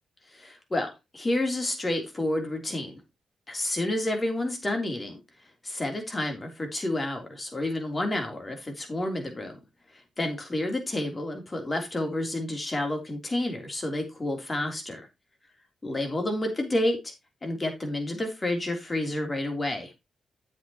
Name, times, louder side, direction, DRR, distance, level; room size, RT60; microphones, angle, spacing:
voice 1, 0.3-3.0 3.5-5.2 5.6-9.6 10.2-15.1 15.8-17.1 17.4-19.9, left 1 dB, 30° left, 4 dB, 3.4 m, -30 dB
8.7 x 8.2 x 3.0 m, 0.24 s
supercardioid pair, 55°, 0 cm